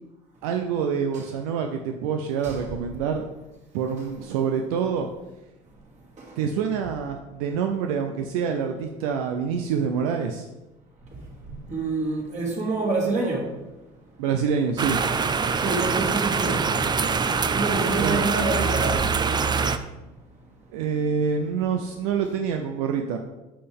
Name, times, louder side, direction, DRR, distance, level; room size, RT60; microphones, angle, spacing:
voice 1, 0.4-3.3 3.7-5.1 6.4-10.5 14.2-15.0 18.0-18.3 20.7-23.2, right 6 dB, 80° right, 4 dB, 0.6 m, -26 dB
voice 2, 11.7-13.4 15.6-16.6 17.5-19.0, right 3 dB, 40° right, -2 dB, 2.5 m, -26 dB
sound 1, 14.8-19.8, right 5 dB, 25° right, 0.5 m, -24 dB
8.5 x 5.6 x 3.6 m, 1.0 s
hypercardioid pair, 75°, 18 cm